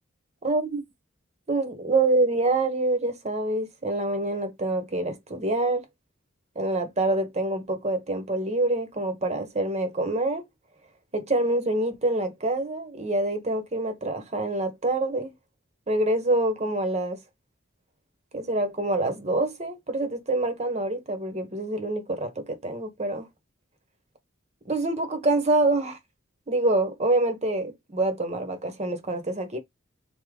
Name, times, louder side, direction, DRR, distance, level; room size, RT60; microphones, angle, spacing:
voice 1, 0.4-0.8 1.5-5.8 6.5-10.4 11.1-15.3 15.9-17.2 18.3-23.3 24.7-26.0 26.5-29.6, right 2 dB, 35° right, 1.0 m, -26 dB
3.6 x 2.9 x 4.8 m
head